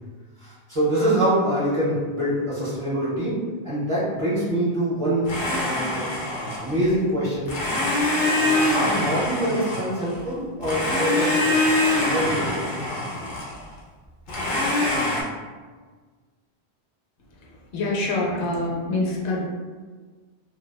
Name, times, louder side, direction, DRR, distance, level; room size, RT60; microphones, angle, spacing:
voice 1, 0.4-5.3 5.6-6.1 6.6-7.5 8.3-11.5 11.9-12.8, right 1 dB, 30° right, -9 dB, 0.8 m, -25 dB
Domestic sounds home sounds, 5.3-6.9 7.5-10.2 10.6-13.6 14.3-15.2, left 1 dB, 60° left, 0.7 m, -24 dB
voice 2, 17.7-19.4, left 2 dB, 90° left, -2 dB, 0.9 m, -25 dB
2.7 x 2.1 x 2.2 m, 1.4 s
omnidirectional pair, 1.1 m